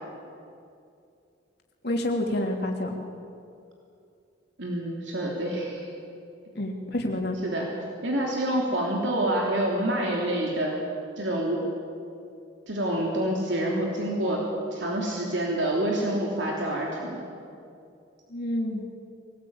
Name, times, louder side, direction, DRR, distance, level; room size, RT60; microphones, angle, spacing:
voice 1, 1.8-2.9 6.5-7.4 18.3-18.8, left 1 dB, 60° left, 1 dB, 3.1 m, -28 dB
voice 2, 4.6-5.9 7.4-7.7 8.0-10.8 11.2-11.6 12.7-14.4 14.7-17.2, right 1 dB, 70° right, -2 dB, 3.3 m, -27 dB
23.5 x 19.5 x 8.9 m, 2.5 s
head